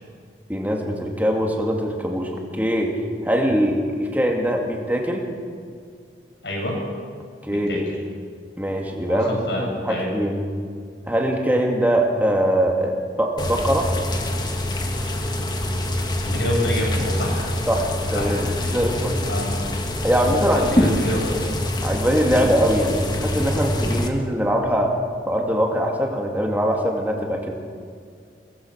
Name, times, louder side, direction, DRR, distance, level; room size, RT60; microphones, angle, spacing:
voice 1, 0.5-2.9 3.2-5.3 7.4-7.9 8.6-10.4 11.1-13.9 17.7-19.3 20.0-21.0 21.8-24.9 25.3-27.5, equal, 10° right, 0 dB, 2.7 m, -22 dB
voice 2, 6.4-6.8 7.5-7.8 9.1-10.1 16.2-17.5 18.1-18.7 19.3-19.5 20.2-21.4 22.3-22.4, left 1 dB, 75° left, -1 dB, 7.6 m, -27 dB
sound 1, 13.4-24.1, left 1 dB, 25° left, 1.7 m, -25 dB
23.0 x 19.0 x 6.5 m, 2.2 s
head